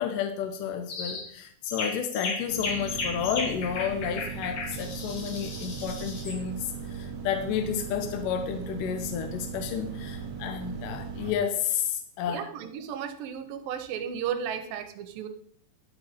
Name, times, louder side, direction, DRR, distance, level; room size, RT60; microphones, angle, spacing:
voice 1, 0.0-12.5, left 8 dB, 75° left, 7 dB, 2.1 m, -31 dB
sound 1, 0.9-1.3 1.7-6.4, left 3 dB, 55° left, 3.3 m, -35 dB
sound 2, 2.5-11.3, right 6 dB, 50° right, 2.3 m, -38 dB
voice 2, 12.3-15.3, right 8 dB, 80° right, 8 dB, 2.3 m, -34 dB
11.0 x 5.2 x 5.8 m, 0.63 s
omnidirectional pair, 4.4 m